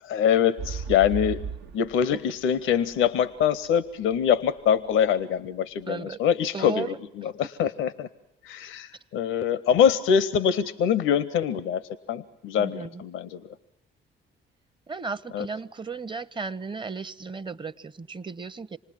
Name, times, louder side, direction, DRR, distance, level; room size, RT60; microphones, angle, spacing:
voice 1, 0.1-1.5 1.7-8.1 8.4-11.8 12.1-13.5 15.3-15.5, left 8 dB, 80° left, 15 dB, 0.8 m, -24 dB
sound 1, 0.6-4.5 5.0-5.1, right 5 dB, 75° right, 1.0 m, -36 dB
voice 2, 5.8-6.2 6.5-7.0 7.6-7.7 12.6-13.0 14.9-18.8, right 4 dB, 25° right, 14 dB, 0.8 m, -35 dB
27.0 x 20.0 x 7.5 m, 0.81 s
cardioid pair, 90°, 20 cm